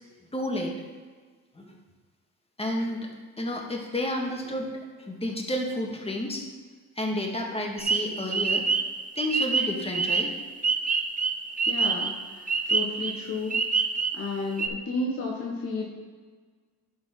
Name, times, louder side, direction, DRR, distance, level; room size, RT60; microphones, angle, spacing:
voice 1, 0.3-0.7 1.6-1.7 2.6-3.1 3.4-4.7 5.1-6.4 7.0-8.6 9.2-10.3, left 1 dB, 15° left, 0 dB, 1.9 m, -30 dB
sound 1, 7.8-14.3 14.6-14.7, right 5 dB, 25° right, 0.7 m, -26 dB
voice 2, 11.7-13.6 14.1-15.8, left 3 dB, 40° left, -3 dB, 1.4 m, -32 dB
11.0 x 4.4 x 4.6 m, 1.5 s
supercardioid pair, 70°, 36 cm